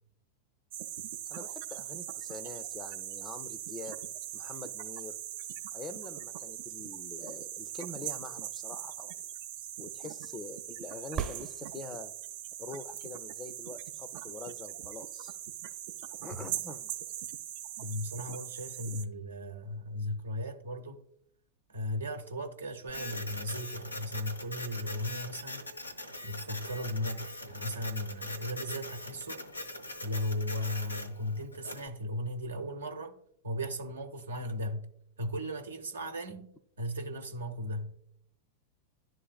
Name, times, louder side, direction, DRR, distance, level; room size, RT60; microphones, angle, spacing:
sound 1, 0.7-19.0, right 12 dB, 50° right, 0.4 m, -41 dB
voice 1, 1.3-4.0 4.3-5.2 5.7-9.2 9.8-12.1 12.6-15.4 16.2-16.9, left 3 dB, 20° left, 0.4 m, -45 dB
sound 2, 11.1-12.3 16.2-16.3, right 8 dB, 30° right, 0.8 m, -37 dB
voice 2, 17.8-21.0 21.7-25.9 26.2-29.4 30.0-33.2 33.4-34.9 35.2-36.5 36.8-38.0, left 1 dB, 70° right, 0.7 m, -36 dB
Printer, 22.9-31.9, left 1 dB, 85° left, 0.6 m, -42 dB
11.0 x 3.9 x 2.3 m
figure-of-eight pair, 90°, 0 cm